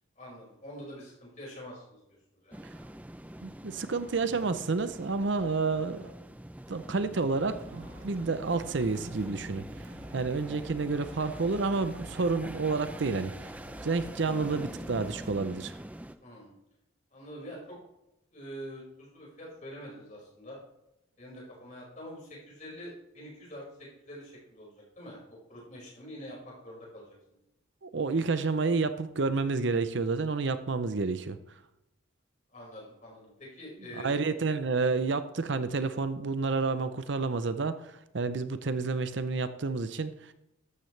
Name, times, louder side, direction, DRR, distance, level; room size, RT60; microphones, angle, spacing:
voice 1, 0.2-2.2 2.4-2.6 16.2-16.5 17.1-17.8 18.3-20.6 21.2-27.2 32.5-34.3, equal, 35° left, -4 dB, 5.4 m, -45 dB
sound 1, 2.5-16.1, right 1 dB, 5° right, 0.5 m, -44 dB
voice 2, 3.4-6.1 6.7-13.5 13.8-15.8 27.8-31.4 34.0-40.3, right 4 dB, 65° right, 11 dB, 0.6 m, -30 dB
sound 2, 7.5-15.4, equal, 85° right, 1.5 m, -49 dB
13.5 x 12.5 x 3.3 m, 0.87 s
head